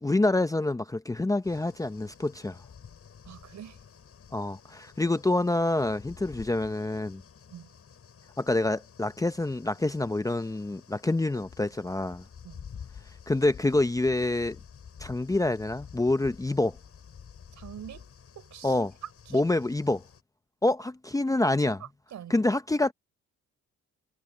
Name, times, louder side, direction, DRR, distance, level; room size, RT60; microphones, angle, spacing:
voice 1, 0.0-2.6 4.3-7.2 8.4-12.2 13.3-14.6 15.0-16.8 18.6-18.9 19.3-20.0 20.6-21.8 22.3-22.9, left 2 dB, 10° left, 0.7 m, -27 dB
sound 1, 1.4-20.2, left 7 dB, 50° left, 6.4 m, -50 dB
voice 2, 3.2-3.8 7.5-7.7 12.4-12.6 17.6-18.1 18.4-18.8 19.3-19.4 21.8-22.4, right 10 dB, 70° right, 6.6 m, -44 dB
cardioid pair, 90°, 30 cm